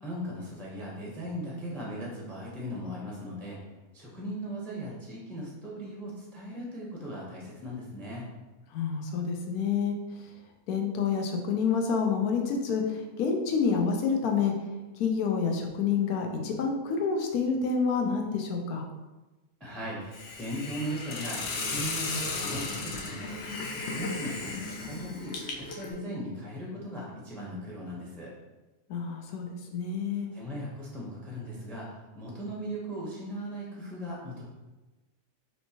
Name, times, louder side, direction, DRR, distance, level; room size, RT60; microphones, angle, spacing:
voice 1, 0.0-3.6 3.9-8.3 19.6-23.2 23.9-28.3 30.3-34.5, equal, ahead, -5 dB, 0.4 m, -38 dB
voice 2, 8.7-10.0 10.7-14.5 14.9-18.8 28.9-30.3, left 5 dB, 85° left, 2 dB, 1.1 m, -28 dB
Hiss, 20.1-25.9, left 3 dB, 60° left, 0.7 m, -35 dB
4.4 x 2.9 x 2.8 m, 1.1 s
omnidirectional pair, 1.5 m